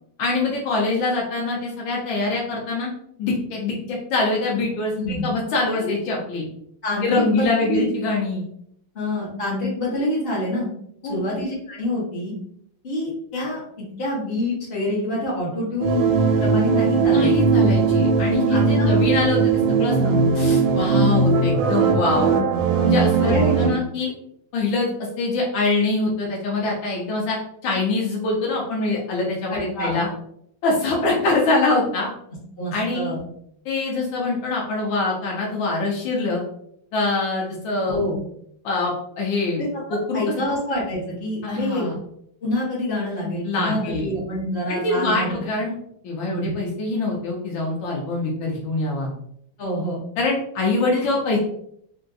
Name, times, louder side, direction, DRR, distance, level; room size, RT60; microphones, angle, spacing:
voice 1, 0.2-2.9 3.2-4.9 5.2-6.4 7.0-8.5 11.0-11.2 17.1-20.0 20.4-22.3 22.8-24.1 24.5-24.9 25.2-27.4 27.6-30.1 30.6-32.1 32.7-33.1 33.6-36.4 36.9-38.0 38.6-39.6 39.9-40.2 41.4-41.9 43.5-44.1 44.7-45.7 46.0-49.1 50.2-51.4, left 3 dB, 85° left, -3 dB, 1.5 m, -24 dB
voice 2, 4.9-5.3 5.8-5.9 6.8-7.9 8.9-10.7 11.0-12.3 12.8-13.6 14.0-17.3 18.5-19.0 20.0-20.3 23.2-23.8 29.5-30.0 32.6-33.2 37.9-38.2 40.1-41.9 42.4-45.4 46.3-46.6 49.6-50.0, left 1 dB, 40° left, -8 dB, 1.0 m, -26 dB
sound 1, 15.8-23.7, right 4 dB, 75° right, 1.2 m, -19 dB
3.6 x 2.6 x 2.3 m, 0.69 s
omnidirectional pair, 2.1 m